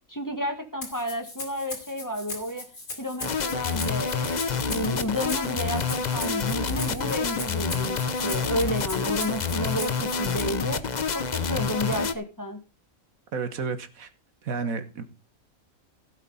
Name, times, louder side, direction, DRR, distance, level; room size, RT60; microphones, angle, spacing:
voice 1, 0.1-2.7 3.0-4.4 4.7-10.8 11.1-12.6, equal, 15° left, 1.7 m, -31 dB
Rattle (instrument), 0.8-10.4, left 2 dB, 80° left, 4.1 m, -39 dB
sound 1, 3.2-12.1, left 5 dB, 40° left, 0.8 m, -28 dB
voice 2, 13.3-14.1 14.4-15.0, right 5 dB, 75° right, 1.7 m, -31 dB
16.5 x 7.6 x 4.0 m
omnidirectional pair, 1.5 m